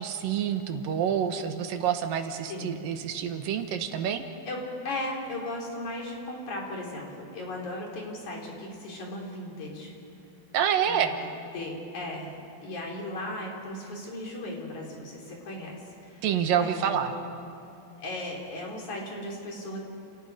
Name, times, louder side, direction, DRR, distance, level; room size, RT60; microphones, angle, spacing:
voice 1, 0.0-4.2 10.5-11.2 16.2-17.1, right 9 dB, 80° right, 7 dB, 2.9 m, -27 dB
voice 2, 4.5-9.9 10.8-11.1 11.5-17.1 18.0-19.8, left 1 dB, 55° left, -1 dB, 5.0 m, -37 dB
30.0 x 29.5 x 4.9 m, 2.6 s
omnidirectional pair, 4.0 m